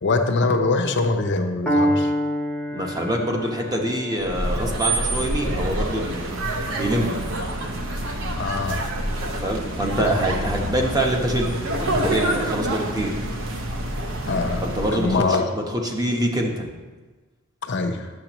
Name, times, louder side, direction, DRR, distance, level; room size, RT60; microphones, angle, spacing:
voice 1, 0.0-2.1 8.4-8.8 10.0-10.2 14.3-14.6 14.9-15.4 17.6-18.1, left 3 dB, 55° left, 6 dB, 0.7 m, -23 dB
Piano, 1.7-9.6, equal, 5° left, 0.7 m, -29 dB
voice 2, 2.7-6.3 6.7-7.2 9.2-11.5 11.8-13.1 14.6-16.7, right 1 dB, 15° right, 1 dB, 1.0 m, -25 dB
sound 1, 4.2-15.3, right 1 dB, 60° right, 0.9 m, -27 dB
10.5 x 7.7 x 3.0 m, 1.3 s
head